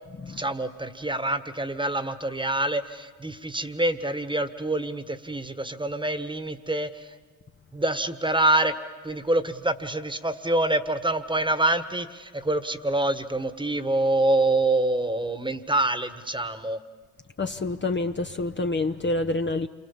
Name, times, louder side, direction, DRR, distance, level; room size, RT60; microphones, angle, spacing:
voice 1, 0.3-7.1 7.7-8.8 9.0-16.8, right 2 dB, 10° right, 1.6 m, -26 dB
voice 2, 17.4-19.7, left 2 dB, 30° left, 1.0 m, -27 dB
28.0 x 23.5 x 7.3 m
supercardioid pair, 60°, 39 cm